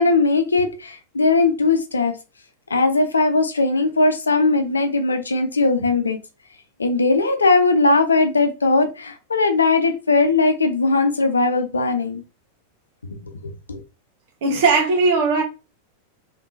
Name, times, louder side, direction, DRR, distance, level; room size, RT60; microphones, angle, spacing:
voice 1, 0.0-2.1 2.7-6.2 6.8-12.2 13.1-13.8, left 3 dB, 75° left, 0.6 m, -19 dB
voice 2, 14.4-15.4, right 3 dB, 50° right, 1.2 m, -18 dB
3.5 x 3.3 x 2.7 m
figure-of-eight pair, 90°, 0 cm